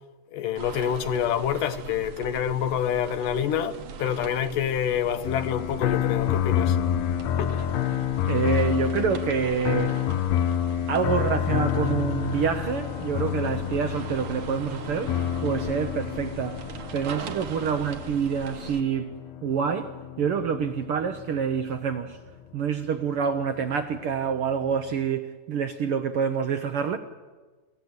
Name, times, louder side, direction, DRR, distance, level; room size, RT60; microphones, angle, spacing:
voice 1, 0.3-6.8 7.4-7.7, left 9 dB, 90° left, 2.7 m, -27 dB
sound 1, 0.5-18.8, right 6 dB, 60° right, 1.7 m, -40 dB
sound 2, 5.2-22.4 23.2-25.1, left 10 dB, 70° left, 1.9 m, -29 dB
voice 2, 8.3-9.9 10.9-16.6 16.9-19.1 19.4-22.2 22.5-27.0, right 7 dB, 75° right, 1.3 m, -27 dB
27.5 x 15.5 x 8.1 m
omnidirectional pair, 3.6 m